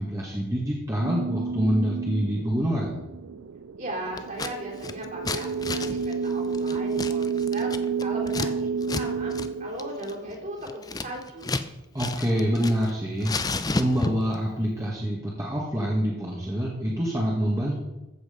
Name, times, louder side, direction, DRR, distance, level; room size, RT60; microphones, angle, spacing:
voice 1, 0.0-3.0 11.9-13.4 13.7-17.8, equal, 15° right, -4 dB, 1.7 m, -26 dB
sound 1, 1.0-10.8, right 5 dB, 75° right, 0.4 m, -30 dB
voice 2, 3.8-8.7 8.9-11.6, right 1 dB, 40° right, -2 dB, 3.4 m, -37 dB
Scissors, 4.2-4.5 4.8-8.5 8.8-9.0 9.3-9.5 9.8-11.7 12.0-12.9 13.2-14.3, left 3 dB, 20° left, 0.5 m, -31 dB
14.5 x 7.9 x 5.1 m, 1.0 s
head